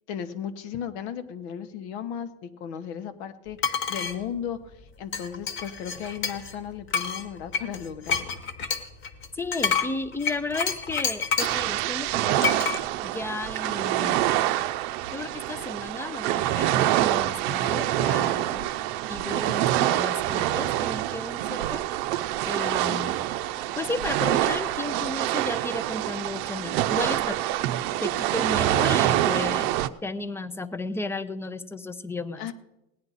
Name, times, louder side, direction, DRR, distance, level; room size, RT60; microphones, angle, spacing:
voice 1, 0.1-8.3 18.4-18.7 32.4-32.5, left 8 dB, 80° left, 10 dB, 1.2 m, -36 dB
sound 1, 3.6-4.1 5.1-6.5 6.9-11.6 12.4-12.8, left 6 dB, 35° left, 1.2 m, -28 dB
voice 2, 9.4-12.6 13.0-14.2 15.1-18.5 19.1-21.8 22.4-23.2 23.8-27.4 28.0-32.5, left 2 dB, 10° left, 13 dB, 0.4 m, -33 dB
sound 2, 11.4-29.9, right 14 dB, 70° right, 0.6 m, -26 dB
17.5 x 9.7 x 4.0 m, 0.89 s
supercardioid pair, 130°, 32 cm